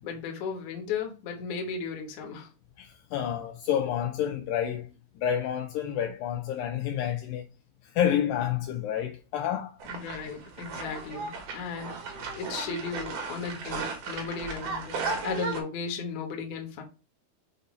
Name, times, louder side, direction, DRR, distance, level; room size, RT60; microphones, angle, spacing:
voice 1, 0.0-2.5 9.9-16.8, left 5 dB, 65° left, 2.1 m, -36 dB
voice 2, 2.8-7.4 7.9-9.8, left 9 dB, 85° left, 2.0 m, -29 dB
sound 1, 9.8-15.6, right 4 dB, 60° right, 2.5 m, -35 dB
6.9 x 2.7 x 5.1 m
omnidirectional pair, 4.7 m